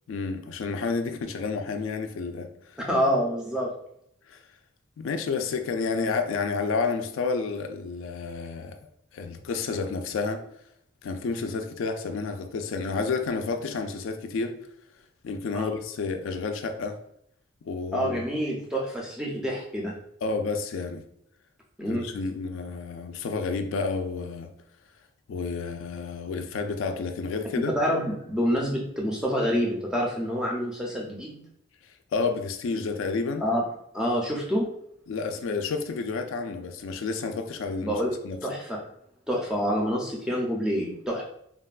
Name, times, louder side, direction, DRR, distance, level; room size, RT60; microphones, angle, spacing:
voice 1, 0.1-2.8 4.3-4.4 5.0-8.8 9.1-10.4 11.0-14.6 15.2-17.0 17.6-18.2 20.2-21.0 21.9-24.5 25.3-27.7 31.8-33.4 35.1-38.4, left 4 dB, 80° left, 0.3 m, -30 dB
voice 2, 2.8-3.7 15.5-15.7 17.9-20.0 21.8-22.1 27.8-31.4 33.4-33.6 33.9-34.7 37.8-38.1 38.4-38.8 39.3-41.2, equal, 5° right, 0.4 m, -27 dB
3.2 x 2.2 x 2.3 m
head